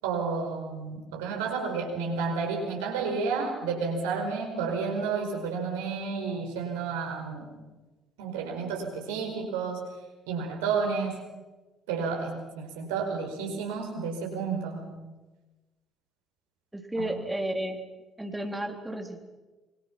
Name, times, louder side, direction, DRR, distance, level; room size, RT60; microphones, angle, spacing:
voice 1, 0.0-7.5 8.2-9.8 10.3-11.2 11.9-14.8 17.0-17.2, right 5 dB, 70° right, 2 dB, 5.0 m, -31 dB
voice 2, 16.7-17.8 18.2-19.2, right 1 dB, 10° right, 4 dB, 3.2 m, -32 dB
26.0 x 24.0 x 6.0 m, 1.2 s
figure-of-eight pair, 50°, 0 cm